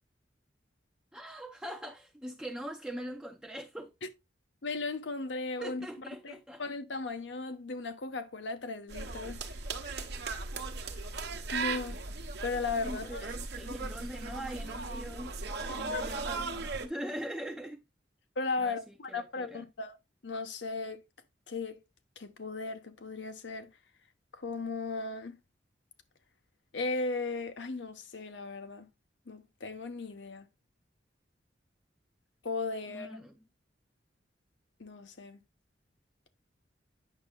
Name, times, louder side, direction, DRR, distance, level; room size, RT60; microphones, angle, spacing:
voice 1, 1.1-3.9 5.6-6.6 12.8-15.4 15.7-17.8 18.6-19.6 32.9-33.3, equal, 5° right, 0.5 m, -42 dB
voice 2, 4.6-5.9 6.2-9.4 9.8-9.9 10.9-11.1 11.5-12.0 12.4-13.2 15.7-16.0 18.4-20.0 20.2-21.0 21.5-21.8 22.2-23.7 24.3-25.4 26.7-28.9 29.3-30.5 32.4-33.2 34.8-35.4, left 3 dB, 80° left, 0.9 m, -36 dB
sound 1, 8.9-16.9, right 3 dB, 65° right, 1.0 m, -37 dB
8.7 x 6.2 x 2.2 m
head